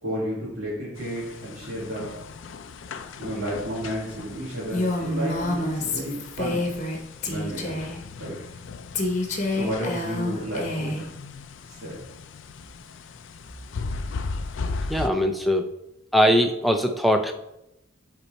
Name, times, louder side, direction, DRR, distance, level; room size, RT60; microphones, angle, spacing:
voice 1, 0.0-2.1 3.2-6.6 7.2-7.8 8.2-8.4 9.5-11.1 11.7-12.0, equal, 75° right, -9 dB, 2.9 m, -32 dB
sound 1, 1.0-15.1, left 4 dB, 65° left, 0.4 m, -38 dB
Female speech woman speaking, 4.7-7.0 7.2-8.0 8.9-11.1, left 2 dB, 35° left, 0.9 m, -28 dB
voice 2, 14.9-15.7 16.1-17.3, equal, ahead, 5 dB, 0.4 m, -21 dB
8.1 x 4.6 x 4.1 m, 0.86 s
head